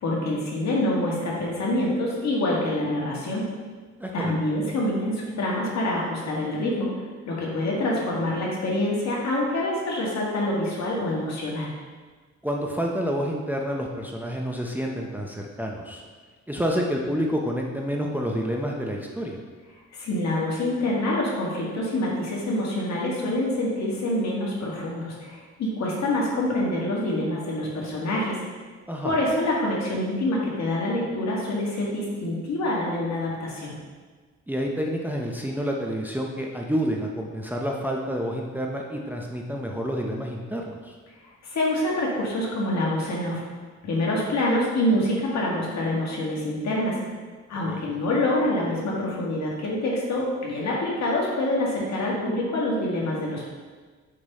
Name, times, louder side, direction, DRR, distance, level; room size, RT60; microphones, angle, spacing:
voice 1, 0.0-3.5 4.1-6.9 7.3-11.7 19.9-28.4 29.0-33.8 41.4-43.4 43.8-47.0 47.5-53.4, left 1 dB, 60° left, -3 dB, 1.8 m, -26 dB
voice 2, 4.0-4.3 12.4-16.0 16.5-19.4 28.9-29.1 34.5-40.9 47.7-47.9, equal, 5° right, 0 dB, 0.7 m, -28 dB
5.2 x 5.1 x 4.1 m, 1.4 s
cardioid pair, 90°, 30 cm